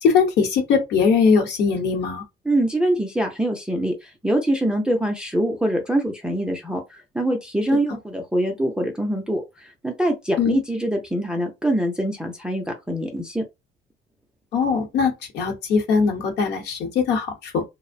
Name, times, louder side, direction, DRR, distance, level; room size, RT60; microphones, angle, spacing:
voice 1, 0.0-2.2 10.4-10.6 14.5-17.6, left 5 dB, 60° left, 0.8 m, -21 dB
voice 2, 2.5-13.4, right 1 dB, 5° right, 0.4 m, -24 dB
2.5 x 2.0 x 2.5 m
cardioid pair, 150°, 19 cm